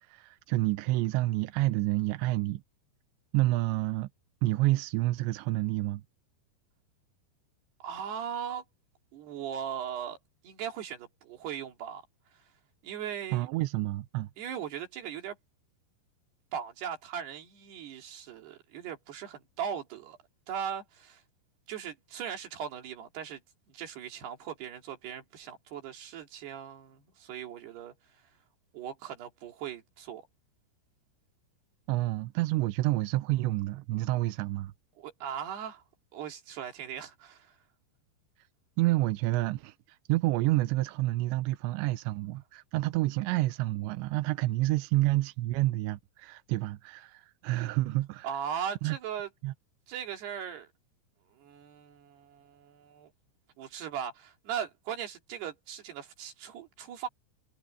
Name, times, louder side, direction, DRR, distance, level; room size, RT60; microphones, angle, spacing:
voice 1, 0.1-2.6 3.3-4.1 4.4-6.0 13.3-14.3 31.9-34.7 38.8-39.7 40.1-48.3 48.8-49.0 49.4-49.5, right 18 dB, 90° right, 3.1 m, -29 dB
voice 2, 7.8-8.6 9.1-10.2 10.4-12.0 12.8-13.5 14.4-15.4 16.5-20.2 20.5-21.2 21.7-23.4 23.7-27.9 28.7-30.3 35.0-35.8 36.1-37.5 48.2-49.3 49.9-50.7 51.4-53.1 53.6-57.1, right 8 dB, 65° right, 4.8 m, -38 dB
omnidirectional pair, 5.2 m